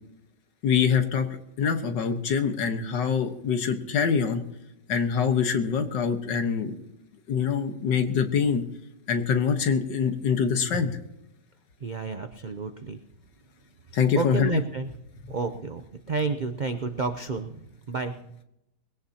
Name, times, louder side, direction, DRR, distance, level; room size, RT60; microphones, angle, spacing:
voice 1, 0.6-1.3 1.6-4.4 4.9-6.8 7.3-8.6 9.1-10.9 13.9-14.6, left 6 dB, 80° left, 7 dB, 1.9 m, -24 dB
voice 2, 11.8-13.0 14.1-14.9 15.3-18.2, right 4 dB, 85° right, 7 dB, 0.4 m, -30 dB
21.0 x 17.0 x 2.9 m, 0.86 s
omnidirectional pair, 1.9 m